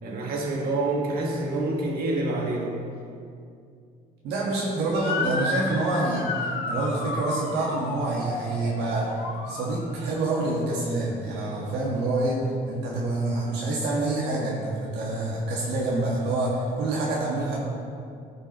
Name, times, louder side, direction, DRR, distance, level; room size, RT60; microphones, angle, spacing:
voice 1, 0.0-2.7 9.5-9.6, right 2 dB, 60° right, -2 dB, 1.8 m, -27 dB
voice 2, 4.2-9.1 9.5-17.6, right 2 dB, 80° right, -4 dB, 1.5 m, -27 dB
Motor vehicle (road) / Siren, 4.9-10.2, left 3 dB, 75° left, 1.0 m, -32 dB
14.5 x 5.6 x 3.1 m, 2.4 s
cardioid pair, 110°, 17 cm